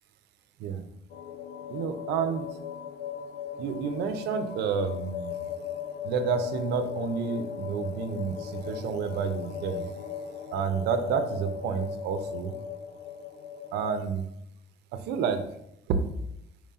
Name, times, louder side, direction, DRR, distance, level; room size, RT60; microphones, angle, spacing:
sound 1, 1.1-14.0, left 8 dB, 65° left, 0.7 m, -38 dB
voice 1, 1.7-2.5 3.6-5.4 6.0-9.9 10.5-12.5 13.7-14.3 14.9-15.4 15.9-16.0, right 6 dB, 80° right, 8 dB, 0.8 m, -30 dB
5.5 x 4.9 x 3.7 m, 0.80 s
cardioid pair, 110°, 17 cm